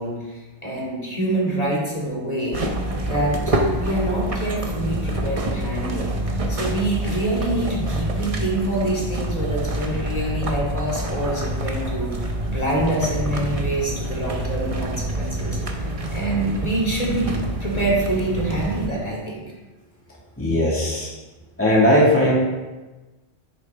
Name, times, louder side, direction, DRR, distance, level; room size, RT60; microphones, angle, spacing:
voice 1, 0.0-2.6 3.0-6.1 6.5-17.3 17.6-19.4, right 1 dB, 35° left, -4 dB, 2.6 m, -26 dB
sound 1, 2.5-18.9, right 1 dB, 35° right, 1.0 m, -27 dB
voice 2, 20.4-21.1 21.6-22.3, left 1 dB, 10° left, -6 dB, 2.1 m, -18 dB
10.5 x 8.6 x 3.6 m, 1.2 s
omnidirectional pair, 1.1 m